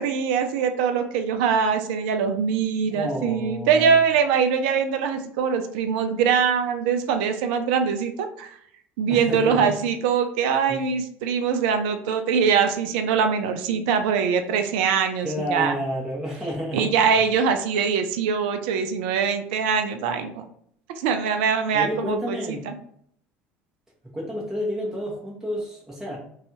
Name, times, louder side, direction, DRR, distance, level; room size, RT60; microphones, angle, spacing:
voice 1, 0.0-8.6 9.0-15.8 16.7-20.4 21.0-22.4 22.7-22.8, right 6 dB, 70° right, 7 dB, 0.4 m, -23 dB
voice 2, 2.9-3.9 9.1-9.7 10.7-10.8 15.2-16.9 21.7-22.6 24.1-26.2, equal, 10° right, -5 dB, 1.0 m, -30 dB
2.6 x 2.3 x 2.8 m, 0.65 s
hypercardioid pair, 70°, 6 cm